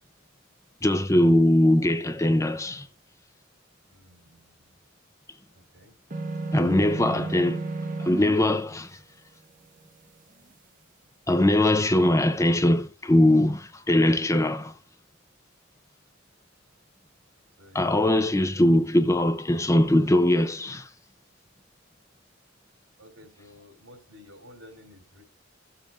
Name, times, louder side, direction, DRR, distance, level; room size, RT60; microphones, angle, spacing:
voice 1, 0.8-2.9 6.5-7.6 8.0-9.0 11.3-14.7 17.7-20.9, left 1 dB, 15° left, 0.6 m, -21 dB
voice 2, 3.9-4.7 5.5-5.9 17.6-18.4 23.0-25.2, left 1 dB, 75° right, 3.1 m, -52 dB
sound 1, 6.1-8.4, right 2 dB, 40° right, 1.4 m, -32 dB
16.0 x 7.3 x 2.4 m
head